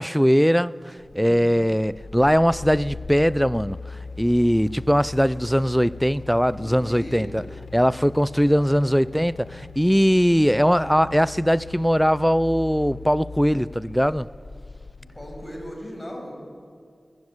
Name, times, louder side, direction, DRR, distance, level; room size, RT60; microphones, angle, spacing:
voice 1, 0.0-3.8 4.2-7.4 7.7-14.3, equal, ahead, 0.5 m, -20 dB
sound 1, 1.0-15.7, left 5 dB, 80° left, 0.6 m, -40 dB
voice 2, 6.5-7.3 8.4-9.0 15.0-16.3, equal, 15° left, 6.4 m, -38 dB
19.0 x 19.0 x 8.0 m
wide cardioid pair, 60°, 0 cm